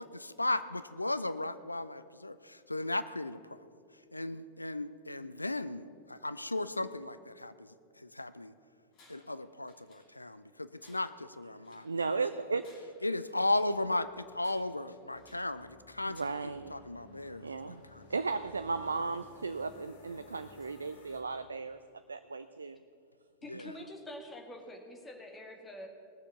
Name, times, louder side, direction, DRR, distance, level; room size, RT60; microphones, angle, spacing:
voice 1, 0.0-3.6 4.1-8.5 9.1-12.1 13.0-18.1 23.5-23.7, left 2 dB, 85° left, 14 dB, 0.4 m, -36 dB
Tools, 8.9-9.4 9.7-10.4 10.8-11.9 12.5-13.8 14.4-15.5 16.1-16.6, left 2 dB, 40° left, 3.7 m, -63 dB
voice 2, 11.8-12.7 16.1-16.7 17.4-17.8 18.1-21.8 22.1-22.8, right 4 dB, 75° right, 11 dB, 0.4 m, -35 dB
sound 1, 13.3-21.2, left 3 dB, 55° left, 1.9 m, -58 dB
voice 3, 23.4-25.9, left 1 dB, 15° left, 2 dB, 2.0 m, -46 dB
18.5 x 7.0 x 7.0 m, 2.4 s
figure-of-eight pair, 90°, 0 cm